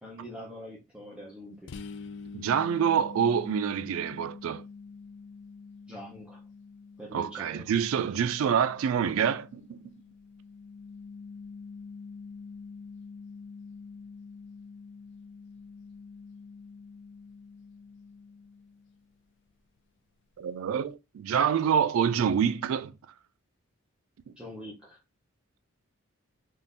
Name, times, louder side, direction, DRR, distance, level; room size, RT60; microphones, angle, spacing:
voice 1, 0.0-1.7 5.9-6.4 7.0-7.7 24.4-25.0, left 1 dB, 5° right, 0.6 m, -44 dB
sound 1, 1.7-19.2, left 4 dB, 55° left, 0.3 m, -46 dB
voice 2, 2.3-4.6 7.1-9.9 20.4-22.9, right 7 dB, 65° right, 0.3 m, -27 dB
3.6 x 2.5 x 2.5 m
head